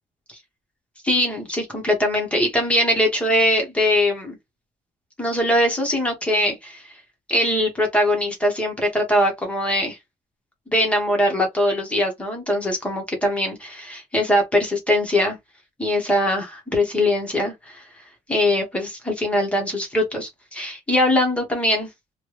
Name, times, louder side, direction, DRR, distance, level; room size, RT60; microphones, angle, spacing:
voice 1, 1.0-4.4 5.2-6.8 7.3-10.0 10.7-15.4 15.8-17.9 18.3-21.9, left 1 dB, 10° left, 1.0 m, -21 dB
3.3 x 2.2 x 3.1 m
cardioid pair, 180°, 13 cm